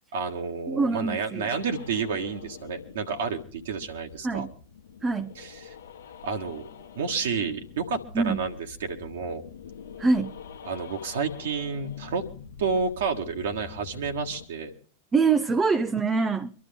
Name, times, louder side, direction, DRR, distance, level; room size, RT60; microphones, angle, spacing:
voice 1, 0.1-4.5 5.3-5.7 6.2-6.7 6.9-9.4 10.6-12.2 12.6-14.7, right 5 dB, 60° right, 3 dB, 1.7 m, -30 dB
voice 2, 0.7-1.5 4.2-4.5 5.0-5.4 8.1-8.4 10.0-10.3 15.1-16.5, right 4 dB, 15° right, 8 dB, 0.7 m, -24 dB
sound 1, 1.5-14.5, left 6 dB, 65° left, 1.0 m, -46 dB
24.0 x 12.5 x 3.5 m, 0.39 s
figure-of-eight pair, 90°, 0 cm